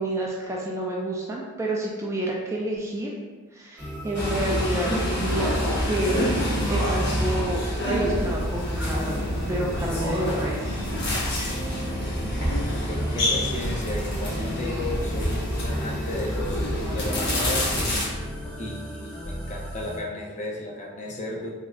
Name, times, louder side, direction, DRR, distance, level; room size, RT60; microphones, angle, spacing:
voice 1, 0.0-3.1 3.5-5.5 5.9-10.7, right 1 dB, 15° right, -3 dB, 0.3 m, -29 dB
sound 1, 3.8-20.0, equal, 5° left, 0.8 m, -35 dB
sound 2, 4.1-18.1, equal, 55° left, 1.0 m, -27 dB
voice 2, 12.5-16.7 16.9-17.7 18.6-21.5, left 1 dB, 35° left, -3 dB, 0.6 m, -34 dB
3.5 x 2.1 x 3.4 m, 1.3 s
head